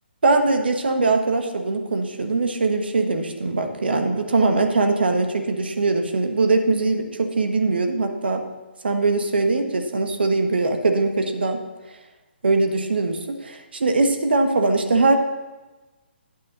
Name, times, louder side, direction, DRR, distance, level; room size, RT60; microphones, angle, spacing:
voice 1, 0.2-8.4 8.8-11.6 12.4-15.2, right 3 dB, 60° right, 6 dB, 1.2 m, -21 dB
9.5 x 5.5 x 6.6 m, 1.2 s
figure-of-eight pair, 135°, 6 cm